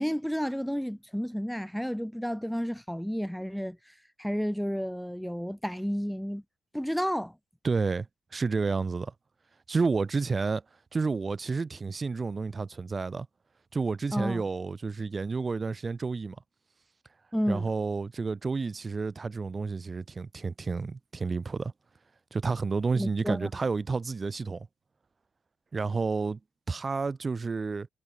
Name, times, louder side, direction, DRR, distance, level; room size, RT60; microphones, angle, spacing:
voice 1, 0.0-3.8 4.2-6.4 6.7-7.3 14.1-14.5 17.3-17.6 22.9-23.5, equal, ahead, 3.1 m, -31 dB
voice 2, 7.6-8.1 8.3-9.1 9.7-10.6 10.9-13.3 13.7-16.4 17.5-21.7 22.3-24.7 25.7-26.4 26.7-27.9, right 4 dB, 30° right, 3.8 m, -30 dB
cardioid pair, 90°, 0 cm